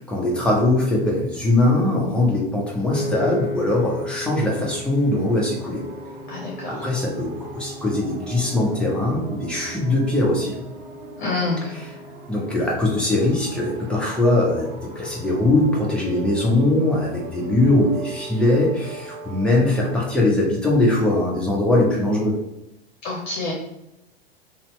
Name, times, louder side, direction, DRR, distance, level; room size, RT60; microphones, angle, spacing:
voice 1, 0.0-5.9 6.7-10.7 11.7-11.8 12.3-22.4, left 2 dB, 5° left, -4 dB, 0.6 m, -21 dB
Piano, 2.9-15.2, left 2 dB, 85° left, 0.5 m, -37 dB
sound 1, 5.1-20.0, right 3 dB, 55° right, 0.5 m, -39 dB
voice 2, 6.3-6.9 11.2-11.7 23.0-23.5, left 3 dB, 50° left, -3 dB, 0.8 m, -27 dB
2.7 x 2.1 x 3.0 m, 0.86 s
figure-of-eight pair, 90°, 31 cm